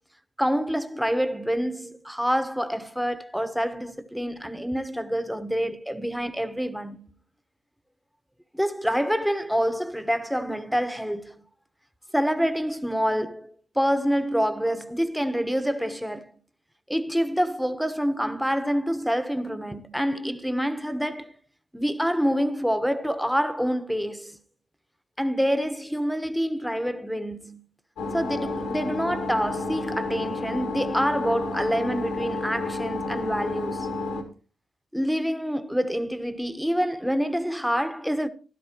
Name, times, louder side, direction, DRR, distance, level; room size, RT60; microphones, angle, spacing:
voice 1, 0.4-7.0 8.5-11.4 12.1-16.3 16.9-21.3 21.7-24.4 25.2-27.6 28.1-34.0 34.9-38.3, equal, ahead, 1.1 m, -27 dB
sound 1, 28.0-34.2, left 3 dB, 85° left, 2.1 m, -31 dB
13.5 x 12.0 x 3.0 m
hypercardioid pair, 40°, 0 cm